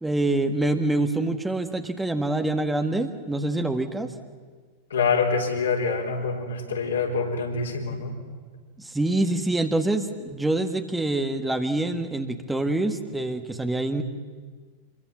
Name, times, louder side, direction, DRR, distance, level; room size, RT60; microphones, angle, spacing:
voice 1, 0.0-4.1 8.8-14.0, right 2 dB, 5° right, 7 dB, 1.5 m, -26 dB
voice 2, 4.9-8.2, left 5 dB, 65° left, 1 dB, 4.1 m, -25 dB
26.5 x 22.5 x 7.3 m, 1.5 s
figure-of-eight pair, 90°, 0 cm